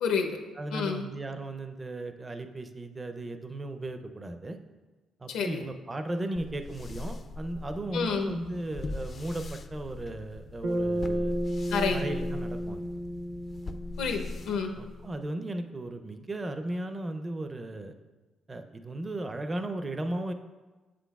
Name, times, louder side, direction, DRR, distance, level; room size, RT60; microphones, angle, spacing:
voice 1, 0.0-0.4 0.7-1.1 5.3-5.6 7.9-8.3 11.7-12.0 14.0-14.8, left 5 dB, 85° left, 3 dB, 0.7 m, -29 dB
voice 2, 0.6-4.6 5.2-11.4 11.9-12.8 14.8-17.9 18.5-20.3, right 1 dB, 25° right, 7 dB, 0.5 m, -36 dB
sound 1, 6.3-15.3, left 3 dB, 45° left, 0.4 m, -40 dB
Bass guitar, 10.6-15.0, equal, 75° right, 1.1 m, -33 dB
7.6 x 6.1 x 2.3 m, 1.2 s
cardioid pair, 90°, 0 cm